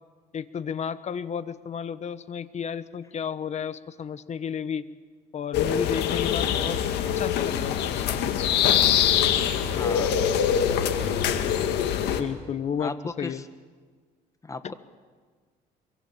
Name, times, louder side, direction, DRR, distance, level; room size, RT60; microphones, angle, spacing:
voice 1, 0.3-4.9 5.3-6.8 7.1-8.5 12.2-13.4 14.6-14.7, left 7 dB, 40° left, 14 dB, 1.2 m, -32 dB
sound 1, 5.5-12.2, left 9 dB, 85° left, 2.0 m, -24 dB
voice 2, 9.7-10.4 12.8-13.4 14.4-14.7, left 3 dB, 20° left, 10 dB, 1.6 m, -36 dB
24.0 x 23.5 x 7.5 m, 1.5 s
cardioid pair, 110°, 17 cm